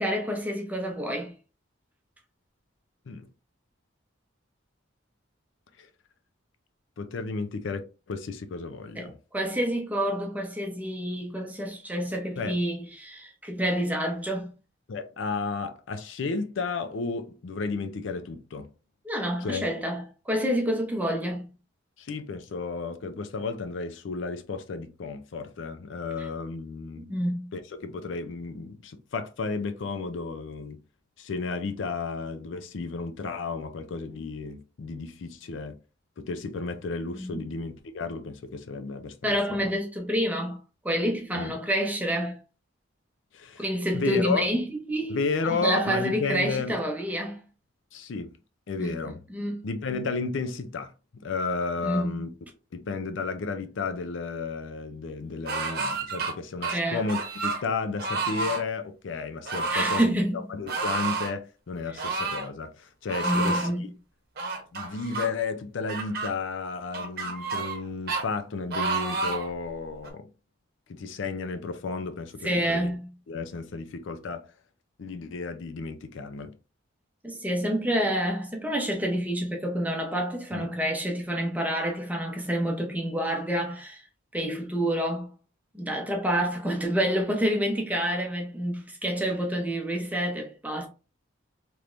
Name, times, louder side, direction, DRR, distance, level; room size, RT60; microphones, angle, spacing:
voice 1, 0.0-1.3 9.0-14.5 19.0-21.5 26.2-26.3 27.0-27.5 37.1-37.4 39.2-40.6 40.8-42.4 43.6-45.2 45.5-47.4 48.8-49.0 49.3-49.7 51.8-52.3 56.7-57.0 59.7-60.4 61.9-62.0 63.2-63.9 72.4-73.1 77.2-84.0 84.3-85.3 85.7-90.9, equal, 10° right, 0.7 m, -28 dB
voice 2, 7.0-9.1 12.4-12.6 14.9-18.7 19.4-19.7 22.0-27.1 27.5-30.8 31.2-35.8 36.2-39.4 39.6-39.7 41.3-41.6 43.3-43.6 43.9-44.4 45.1-46.8 47.9-48.4 48.7-49.2 49.6-52.3 52.7-63.7 64.7-70.3 70.9-72.9 73.3-74.5 75.0-76.5 80.5-80.7, left 4 dB, 70° left, 0.4 m, -33 dB
sound 1, 55.4-56.3 56.6-57.6 58.0-58.6 59.4-60.1 60.7-61.3 62.0-62.5 63.1-63.7 64.4-65.3 65.9-66.3 66.9-67.8 68.1-68.2 68.7-69.5 70.0-70.1, right 3 dB, 50° right, 0.9 m, -30 dB
3.3 x 3.1 x 2.5 m
head